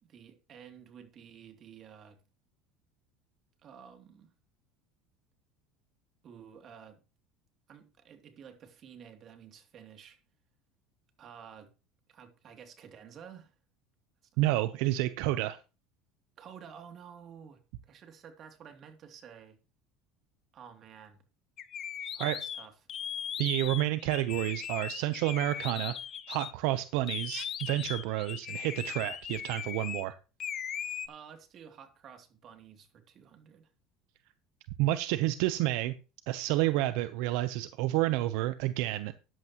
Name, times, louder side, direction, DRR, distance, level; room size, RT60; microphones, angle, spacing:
voice 1, 0.0-2.2 3.6-4.3 6.2-7.0 7.7-10.2 11.2-11.7 12.1-13.5 16.4-19.6 20.5-21.2 22.1-22.7 31.1-33.7, right 7 dB, 45° right, 2.8 m, -51 dB
voice 2, 14.4-15.6 22.2-22.4 23.4-25.9 26.3-30.1 34.8-35.9 36.3-39.1, right 15 dB, 75° right, 0.8 m, -30 dB
sound 1, 21.6-26.5 27.1-30.1 30.4-31.1, left 9 dB, 40° left, 1.3 m, -38 dB
13.5 x 11.0 x 3.0 m
supercardioid pair, 115°, 0 cm